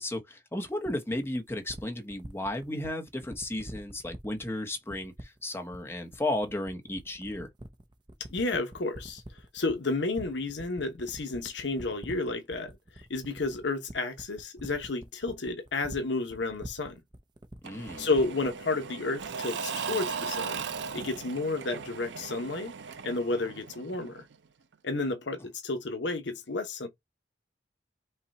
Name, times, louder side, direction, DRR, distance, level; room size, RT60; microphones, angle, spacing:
voice 1, 0.0-7.5 17.6-18.1, left 1 dB, 15° left, 0.9 m, -34 dB
sound 1, 0.8-18.6, right 1 dB, 25° right, 0.6 m, -45 dB
voice 2, 8.3-9.2 9.5-12.8 13.1-17.0 18.0-20.7 20.9-22.7 23.0-24.2 24.8-26.9, left 3 dB, 75° left, 0.9 m, -31 dB
Engine / Mechanisms / Drill, 17.6-24.3, right 6 dB, 75° right, 0.5 m, -38 dB
5.5 x 2.3 x 4.1 m
head